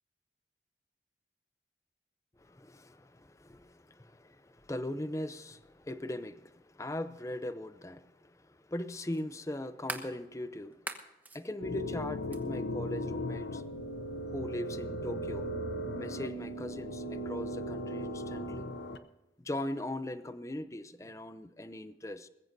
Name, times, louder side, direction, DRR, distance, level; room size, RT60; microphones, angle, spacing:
voice 1, 2.4-10.9 11.3-13.6 14.3-15.5 16.0-18.7 19.4-22.3, left 1 dB, 20° left, 12 dB, 0.6 m, -40 dB
sound 1, 7.2-7.3 9.1-10.1 10.7-11.4 12.3-12.4, right 2 dB, 10° right, 1.0 m, -41 dB
sound 2, 11.6-19.0, equal, 80° left, 0.8 m, -37 dB
20.5 x 15.0 x 2.7 m, 1.1 s
head